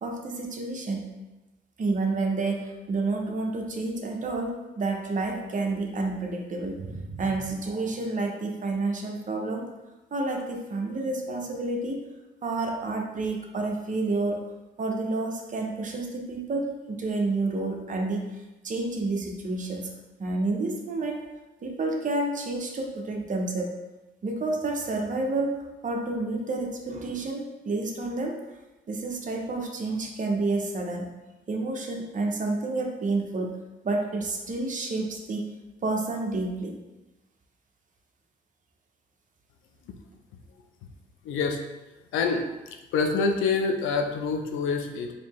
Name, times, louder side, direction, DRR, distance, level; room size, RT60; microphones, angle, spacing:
voice 1, 0.0-1.1 1.8-9.7 10.1-12.0 12.4-14.4 14.8-18.3 18.6-19.9 20.2-21.2 21.6-23.7 24.2-25.5 25.8-28.4 28.9-31.1 31.5-33.6 33.8-35.5 35.8-36.8, right 2 dB, 40° right, 2 dB, 0.7 m, -29 dB
voice 2, 41.2-41.6 42.1-42.4 42.9-45.1, left 4 dB, 85° left, 5 dB, 0.5 m, -26 dB
4.2 x 2.7 x 3.0 m, 1.0 s
cardioid pair, 90°, 20 cm